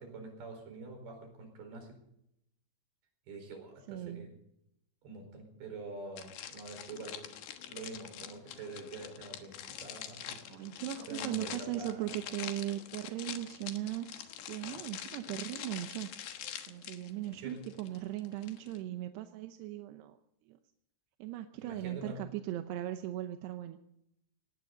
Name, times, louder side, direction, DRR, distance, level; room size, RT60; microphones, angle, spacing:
voice 1, 0.0-1.9 3.3-4.4 5.0-7.2 7.7-10.4 11.1-12.1 17.4-17.6 21.6-22.2, right 3 dB, 70° right, 4 dB, 6.5 m, -46 dB
voice 2, 3.9-4.3 10.5-14.1 14.5-16.1 16.7-20.2 20.5-20.6 21.2-23.8, right 13 dB, 90° right, 7 dB, 3.0 m, -38 dB
sound 1, 6.2-18.8, left 10 dB, 85° left, 3.5 m, -45 dB
18.5 x 18.5 x 4.0 m, 0.79 s
omnidirectional pair, 4.7 m